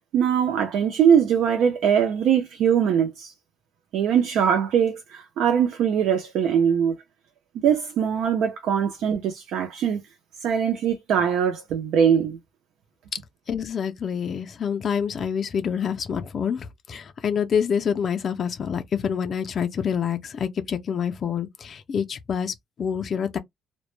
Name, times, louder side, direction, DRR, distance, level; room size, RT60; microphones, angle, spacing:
voice 1, 0.1-3.3 3.9-7.0 7.6-10.0 10.4-12.4, right 8 dB, 75° right, 0.5 m, -21 dB
voice 2, 13.5-23.4, left 7 dB, 40° left, 0.3 m, -27 dB
2.1 x 2.0 x 3.0 m
cardioid pair, 170°, 0 cm